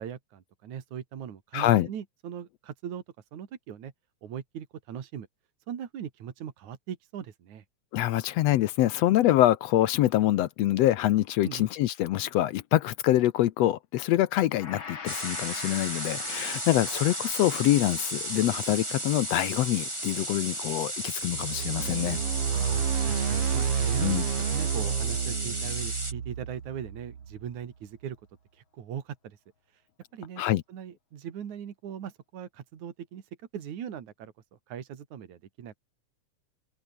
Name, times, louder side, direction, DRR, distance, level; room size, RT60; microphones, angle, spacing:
voice 1, 0.0-3.0 3.3-3.9 4.2-5.3 5.7-7.6 11.4-11.7 22.5-24.2 24.5-28.2 28.5-29.4 29.7-29.8 30.1-30.4 30.7-33.2 33.5-34.3 34.7-35.8, right 9 dB, 75° right, 3.5 m, -39 dB
voice 2, 1.5-1.9 7.9-22.2 24.0-24.2 30.4-30.6, left 14 dB, 75° left, 1.7 m, -25 dB
Gong, 14.5-23.9, left 5 dB, 40° left, 3.2 m, -45 dB
sound 1, 15.1-26.1, right 1 dB, 10° right, 5.4 m, -34 dB
sound 2, 21.2-27.4, right 7 dB, 55° right, 3.2 m, -30 dB
omnidirectional pair, 3.4 m